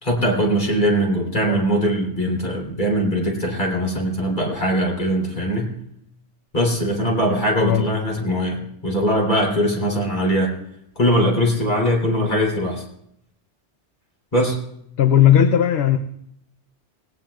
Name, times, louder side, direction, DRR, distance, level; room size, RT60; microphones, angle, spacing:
voice 1, 0.0-5.8 6.5-10.5 11.0-12.8 14.3-14.6, equal, 40° left, -1 dB, 3.7 m, -21 dB
voice 2, 15.0-16.0, left 10 dB, 65° left, 8 dB, 0.9 m, -16 dB
20.0 x 17.5 x 2.3 m, 0.74 s
omnidirectional pair, 1.2 m